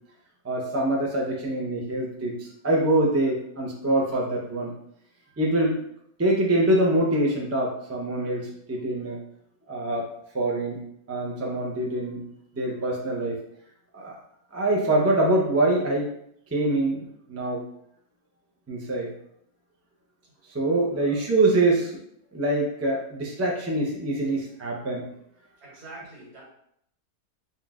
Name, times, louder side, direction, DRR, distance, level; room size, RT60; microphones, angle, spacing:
voice 1, 0.4-4.7 5.4-5.8 6.2-9.2 9.7-10.1 10.3-10.8 11.1-12.2 12.5-13.4 13.9-14.2 14.5-16.1 16.5-17.6 18.7-19.1 20.5-22.0 22.3-25.1, right 1 dB, 25° right, -3 dB, 0.3 m, -24 dB
voice 2, 20.9-21.3 25.6-26.4, right 1 dB, 80° right, -5 dB, 2.0 m, -43 dB
5.7 x 2.6 x 2.4 m, 0.71 s
omnidirectional pair, 1.6 m